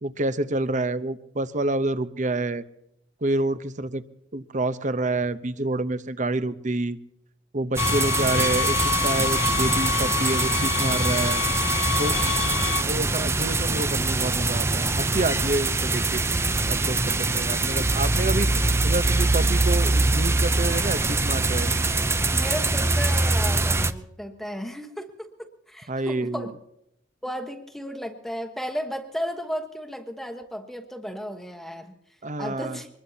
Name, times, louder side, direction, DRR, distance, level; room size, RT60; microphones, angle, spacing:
voice 1, 0.0-2.6 3.2-4.0 4.3-7.0 7.5-8.8 9.0-11.4 12.0-12.2 12.8-16.2 16.7-21.7 25.9-26.5 32.2-32.8, right 2 dB, 40° right, 13 dB, 0.8 m, -28 dB
sound 1, 7.8-12.8, left 7 dB, 75° left, 0.5 m, -27 dB
sound 2, 7.8-23.9, right 2 dB, 15° right, 0.5 m, -23 dB
voice 2, 22.3-26.5 27.2-31.9 32.4-32.9, equal, ahead, 3 dB, 1.2 m, -34 dB
24.5 x 21.0 x 2.8 m, 0.80 s
head